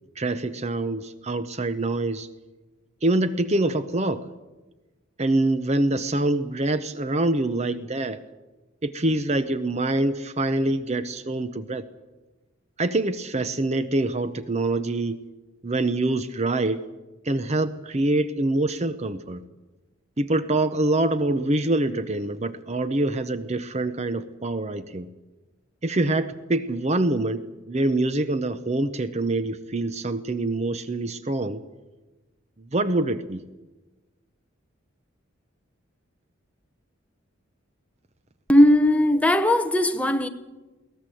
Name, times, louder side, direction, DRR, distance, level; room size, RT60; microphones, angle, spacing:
voice 1, 0.2-2.3 3.0-4.3 5.2-8.2 8.8-11.9 12.8-15.2 15.6-16.9 17.2-19.4 20.2-25.1 25.8-31.6 32.7-33.4, right 2 dB, 35° right, 0.8 m, -25 dB
voice 2, 38.5-40.3, left 1 dB, 5° left, 1.1 m, -18 dB
22.0 x 18.0 x 7.7 m
head